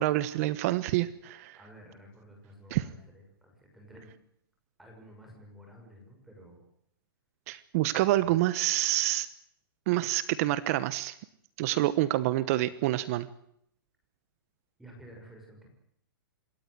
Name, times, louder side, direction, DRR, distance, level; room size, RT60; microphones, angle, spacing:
voice 1, 0.0-1.6 2.7-2.8 7.5-9.3 9.9-11.1 11.6-13.3, right 15 dB, 40° right, 15 dB, 1.1 m, -27 dB
voice 2, 1.6-4.1 4.8-6.6 8.2-8.4 14.8-15.7, equal, ahead, 0 dB, 6.3 m, -52 dB
26.5 x 14.0 x 9.7 m, 0.72 s
hypercardioid pair, 155°, 12 cm